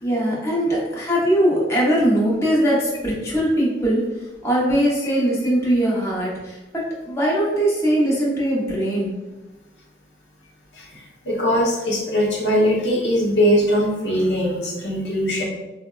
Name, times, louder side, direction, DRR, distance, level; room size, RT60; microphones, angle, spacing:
voice 1, 0.0-4.0 4.4-9.1, right 1 dB, 15° left, -6 dB, 0.7 m, -21 dB
voice 2, 10.7-15.4, equal, 75° left, -3 dB, 0.7 m, -21 dB
3.9 x 2.1 x 2.3 m, 1.1 s
head